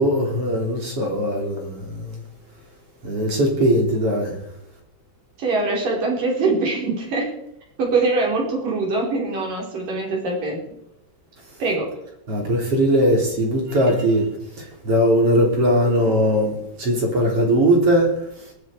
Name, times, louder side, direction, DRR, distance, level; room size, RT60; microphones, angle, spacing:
voice 1, 0.0-2.2 3.0-4.4 12.3-14.3 14.6-18.1, equal, 35° right, 3.8 m, -20 dB
voice 2, 5.4-7.3 7.8-10.6 11.6-11.9, right 3 dB, 55° right, 6.6 m, -23 dB
21.0 x 12.0 x 5.0 m
omnidirectional pair, 4.7 m